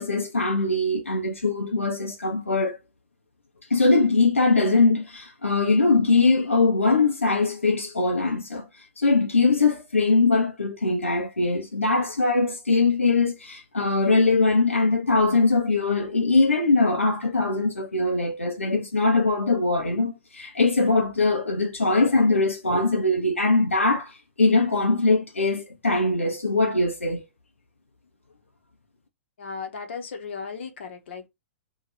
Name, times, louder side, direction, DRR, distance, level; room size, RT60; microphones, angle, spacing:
voice 1, 0.0-2.8 3.7-8.7 9.0-27.2, left 3 dB, 85° left, 0.8 m, -22 dB
voice 2, 29.4-31.3, left 5 dB, 65° left, 1.0 m, -36 dB
2.8 x 2.5 x 4.1 m
figure-of-eight pair, 110°, 7 cm